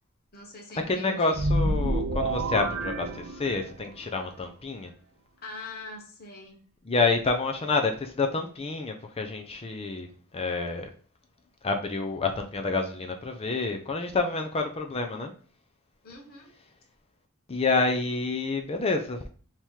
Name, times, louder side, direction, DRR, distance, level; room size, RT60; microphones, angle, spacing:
voice 1, 0.3-1.4 5.4-6.6 16.0-16.5, left 2 dB, 45° left, 0 dB, 1.1 m, -43 dB
voice 2, 0.9-4.9 6.9-10.1 10.3-10.9 11.6-15.3 17.5-19.3, left 3 dB, 25° left, 5 dB, 0.5 m, -28 dB
sound 1, 1.3-3.9, right 1 dB, 65° right, 0.8 m, -28 dB
3.6 x 2.9 x 4.5 m, 0.41 s
head